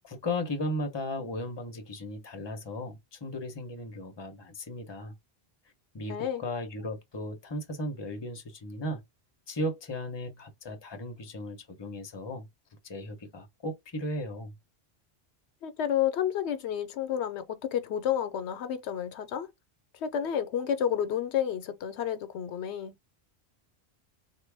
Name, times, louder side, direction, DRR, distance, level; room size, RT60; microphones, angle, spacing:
voice 1, 0.0-5.2 5.9-9.0 9.5-12.5 12.8-14.6, left 1 dB, 30° left, 0.7 m, -36 dB
voice 2, 6.1-6.4 15.6-19.5 19.9-23.0, left 9 dB, 85° left, 0.9 m, -30 dB
3.5 x 2.1 x 3.3 m
omnidirectional pair, 1.1 m